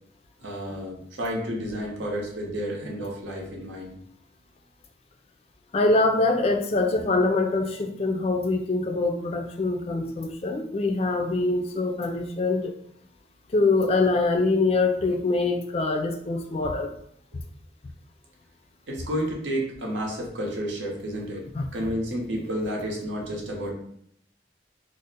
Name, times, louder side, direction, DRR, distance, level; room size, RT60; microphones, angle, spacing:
voice 1, 0.4-4.0 18.9-23.7, equal, 90° right, -1 dB, 0.8 m, -31 dB
voice 2, 5.7-12.7 13.5-16.9 21.5-21.7, left 3 dB, 35° left, 5 dB, 0.3 m, -24 dB
2.5 x 2.0 x 3.9 m, 0.69 s
head